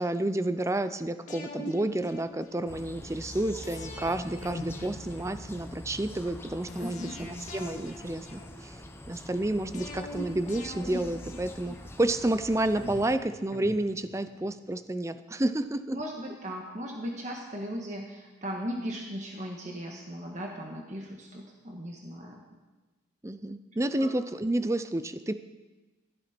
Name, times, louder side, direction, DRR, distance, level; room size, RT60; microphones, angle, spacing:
voice 1, 0.0-8.8 9.1-16.0 23.2-25.3, right 1 dB, 15° right, 11 dB, 0.5 m, -30 dB
sound 1, 1.3-2.8 3.6-5.8 6.7-8.9 9.7-12.1 12.8-14.4 14.7-14.8, left 1 dB, 40° left, 1.8 m, -43 dB
sound 2, 2.7-13.2, left 1 dB, 15° left, 0.8 m, -45 dB
voice 2, 6.8-7.2 15.9-22.4 24.0-24.1, equal, 40° right, 0 dB, 1.5 m, -37 dB
15.5 x 13.0 x 4.4 m, 1.2 s
head